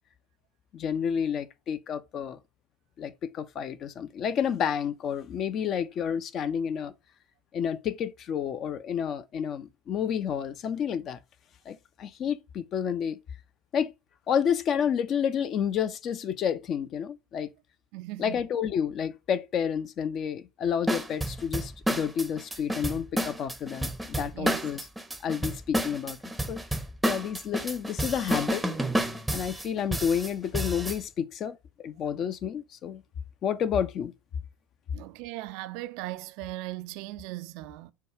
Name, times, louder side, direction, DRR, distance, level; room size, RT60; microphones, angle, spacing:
voice 1, 0.7-2.4 3.0-6.9 7.5-11.2 11.7-13.2 13.7-13.9 14.3-17.5 18.2-24.8 25.2-26.2 26.5-26.6 27.0-28.7 29.3-33.0 33.4-34.1, left 8 dB, 40° left, 0.5 m, -30 dB
voice 2, 17.9-18.4 24.3-24.6 34.9-37.9, right 17 dB, 55° right, 0.3 m, -38 dB
sound 1, 20.9-31.0, right 1 dB, 5° right, 0.6 m, -30 dB
4.6 x 2.3 x 4.7 m
figure-of-eight pair, 70°, 0 cm